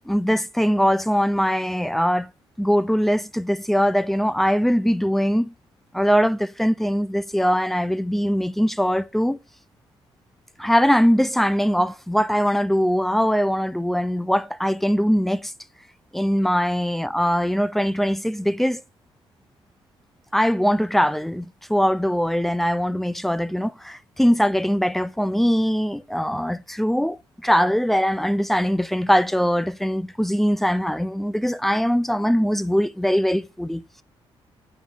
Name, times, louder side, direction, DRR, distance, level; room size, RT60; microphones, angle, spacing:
voice 1, 0.1-2.3 2.6-5.5 5.9-9.4 10.6-15.5 16.1-18.8 20.3-34.0, equal, ahead, 0.5 m, -21 dB
9.5 x 4.9 x 6.2 m
cardioid pair, 115°, 10 cm